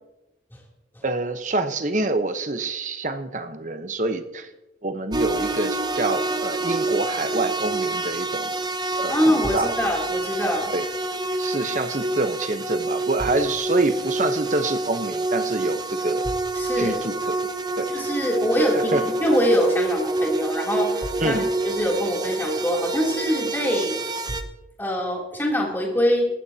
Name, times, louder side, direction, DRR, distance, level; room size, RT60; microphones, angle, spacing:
voice 1, 1.0-4.5 4.8-8.5 9.0-9.8 10.7-10.9 11.4-16.3 16.8-17.4 17.8-18.1 18.9-19.0 21.2-21.4, right 2 dB, 45° right, 8 dB, 1.0 m, -26 dB
sound 1, 5.1-24.4, right 2 dB, 25° right, 0.8 m, -27 dB
voice 2, 9.1-10.7 16.6-17.0 17.9-21.4 21.6-24.0 24.8-26.3, equal, 10° left, -2 dB, 3.1 m, -24 dB
19.0 x 14.5 x 2.9 m, 0.97 s
head